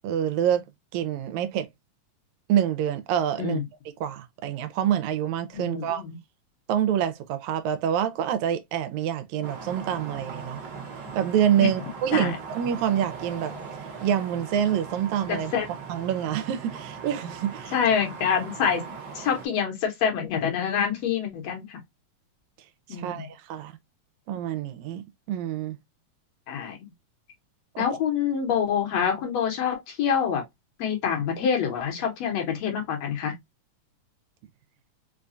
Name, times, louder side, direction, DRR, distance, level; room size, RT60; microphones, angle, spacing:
voice 1, 0.0-0.6 0.9-1.7 2.5-3.6 4.0-6.0 6.7-10.6 11.1-13.5 14.0-15.5 15.9-17.8 22.9-23.7 24.3-25.0 25.3-25.8 27.8-27.9, right 10 dB, 80° right, 1.9 m, -26 dB
voice 2, 5.5-6.2 11.6-11.7 12.1-12.3 15.3-15.7 17.7-18.8 19.2-21.8 22.9-23.3 26.5-26.8 27.8-30.4 30.8-33.4, left 7 dB, 70° left, 2.0 m, -26 dB
sound 1, 9.4-19.5, right 5 dB, 55° right, 1.2 m, -39 dB
4.8 x 2.3 x 2.4 m
omnidirectional pair, 3.3 m